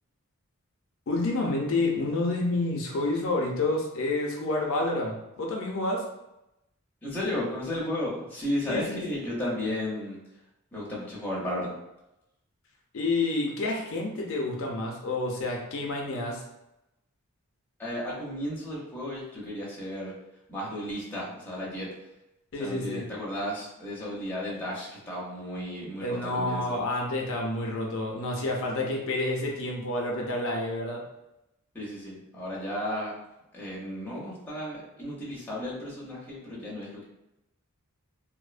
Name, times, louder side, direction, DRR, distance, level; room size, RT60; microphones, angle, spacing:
voice 1, 1.1-6.1 8.7-9.0 12.9-16.4 22.5-23.0 26.0-31.0, left 2 dB, 60° left, -1 dB, 0.4 m, -29 dB
voice 2, 7.0-10.2 10.7-11.8 17.8-20.1 20.5-21.9 22.6-26.8 31.7-33.1 33.5-37.0, left 1 dB, 10° left, -6 dB, 0.6 m, -34 dB
2.5 x 2.0 x 2.4 m, 0.90 s
head